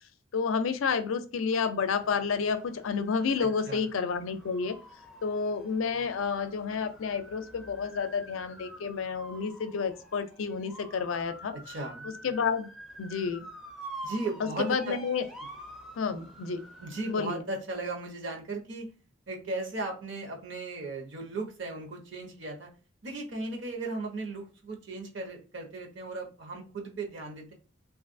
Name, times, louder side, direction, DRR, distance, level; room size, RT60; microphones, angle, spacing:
voice 1, 0.3-4.7 5.2-11.5 12.2-12.7 13.0-13.4 14.6-15.2 16.0-16.6 17.1-17.4, left 5 dB, 85° left, 10 dB, 0.4 m, -30 dB
sound 1, 1.8-17.1, right 1 dB, ahead, 0.5 m, -48 dB
voice 2, 3.4-3.8 11.5-12.1 14.0-15.0 16.8-18.9 19.3-22.7 23.0-27.5, right 2 dB, 65° right, 1 dB, 0.9 m, -36 dB
3.2 x 2.4 x 2.5 m, 0.37 s
head